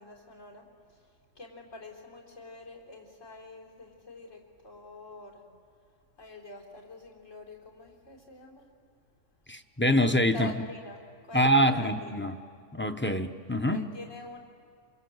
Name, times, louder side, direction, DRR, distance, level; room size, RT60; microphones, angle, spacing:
voice 1, 0.0-5.4 6.2-8.7 10.3-12.3 13.7-14.4, left 2 dB, 85° left, -2 dB, 4.4 m, -46 dB
voice 2, 9.5-10.5 11.3-12.4 12.7-13.9, equal, 10° left, 7 dB, 0.7 m, -25 dB
27.0 x 25.0 x 7.9 m, 2.2 s
omnidirectional pair, 1.3 m